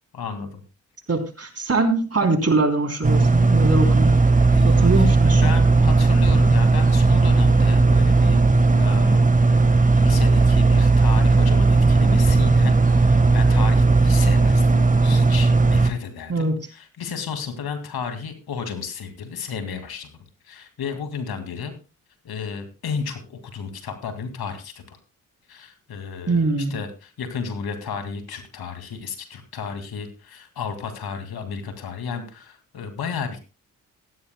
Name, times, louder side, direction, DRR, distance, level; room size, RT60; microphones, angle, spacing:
voice 1, 0.1-0.6 4.5-8.4 8.8-9.2 9.5-20.1 20.5-21.7 22.2-25.0 25.5-33.4, left 6 dB, 75° left, 7 dB, 2.3 m, -33 dB
voice 2, 1.1-4.1 4.6-5.5 16.3-16.6 26.3-26.7, right 3 dB, 40° right, 4 dB, 3.4 m, -22 dB
sound 1, 3.0-15.9, right 3 dB, 20° right, 1.4 m, -16 dB
15.5 x 14.5 x 2.2 m, 0.31 s
supercardioid pair, 40°, 38 cm